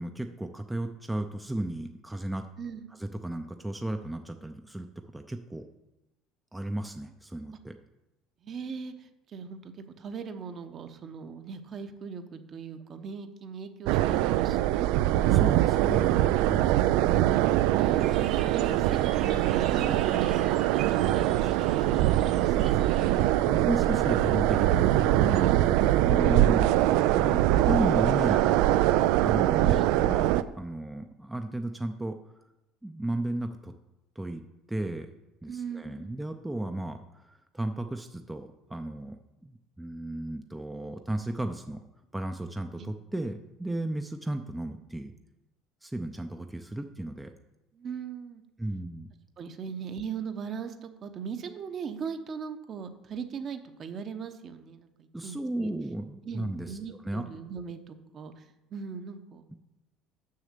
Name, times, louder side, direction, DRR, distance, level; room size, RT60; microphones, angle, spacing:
voice 1, 0.0-2.5 2.9-4.9 5.1-5.6 6.5-7.8 15.3-17.1 23.4-26.7 27.2-28.7 29.2-32.2 32.8-33.7 34.2-34.4 34.7-35.1 35.4-39.2 39.4-41.8 42.1-45.1 45.8-47.3 48.6-49.1 55.1-56.8 57.0-57.3, right 1 dB, 5° right, 5 dB, 0.5 m, -34 dB
voice 2, 8.4-9.7 10.0-14.9 17.7-20.6 20.9-23.2 29.6-29.9 35.5-36.2 42.8-42.9 47.7-48.4 49.4-55.7 56.2-58.4 58.7-59.4, right 6 dB, 40° right, 8 dB, 0.9 m, -39 dB
sound 1, 13.9-30.4, right 14 dB, 80° right, 0.3 m, -23 dB
sound 2, 18.0-23.4, right 7 dB, 60° right, 1.2 m, -45 dB
6.6 x 6.2 x 6.7 m, 0.96 s
supercardioid pair, 105°, 0 cm